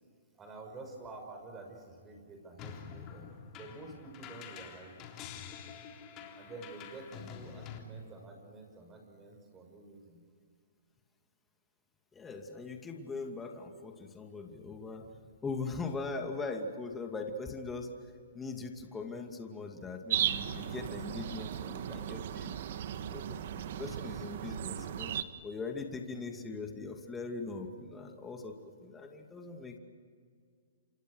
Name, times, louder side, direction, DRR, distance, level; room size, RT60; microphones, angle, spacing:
voice 1, 0.4-3.3 3.6-5.1 6.3-10.2, right 3 dB, 20° right, 4 dB, 5.9 m, -49 dB
sound 1, 2.6-7.8, left 7 dB, 30° left, 3.5 m, -47 dB
voice 2, 12.1-15.1 15.4-17.9 18.3-22.5 23.0-25.1 25.4-29.8, left 4 dB, 10° left, 3 dB, 2.5 m, -41 dB
sound 2, 20.1-25.2, right 10 dB, 55° right, 1.6 m, -36 dB
29.0 x 26.0 x 6.5 m, 2.1 s
hypercardioid pair, 135°, 0 cm